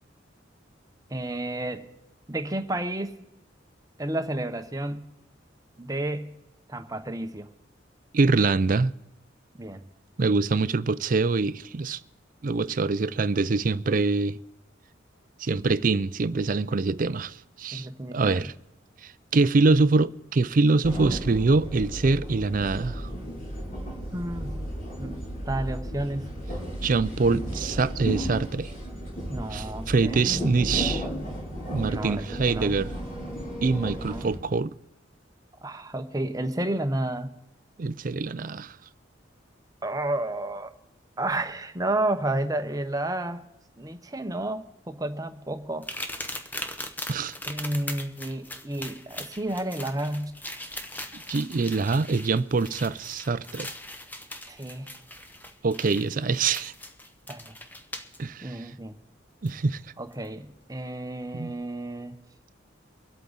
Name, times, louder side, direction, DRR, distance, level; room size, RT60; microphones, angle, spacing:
voice 1, 1.1-1.8 2.3-3.2 4.0-5.1 5.8-6.3 6.7-7.5 9.6-9.8 17.7-18.5 24.1-24.6 25.0-25.2 25.5-26.3 29.3-30.2 31.9-32.7 34.0-34.3 35.6-37.3 39.8-40.7 41.2-43.4 43.8-45.8 47.5-50.3 54.5-54.9 57.3-57.5 58.4-58.9 60.0-62.1, right 1 dB, 20° right, 0.9 m, -31 dB
voice 2, 8.1-8.9 10.2-12.0 12.4-14.4 15.4-18.5 19.0-23.1 26.8-28.7 29.5-31.1 31.7-32.9 33.6-34.7 37.8-38.8 47.1-47.4 51.1-53.7 55.6-56.7 58.2-58.7 59.4-59.8 61.3-61.5, right 3 dB, 45° right, 0.5 m, -24 dB
sound 1, 20.8-34.4, equal, 45° left, 3.5 m, -34 dB
sound 2, 45.8-58.2 59.5-59.6 60.1-60.3, left 1 dB, 10° left, 0.8 m, -40 dB
24.5 x 8.3 x 4.0 m
head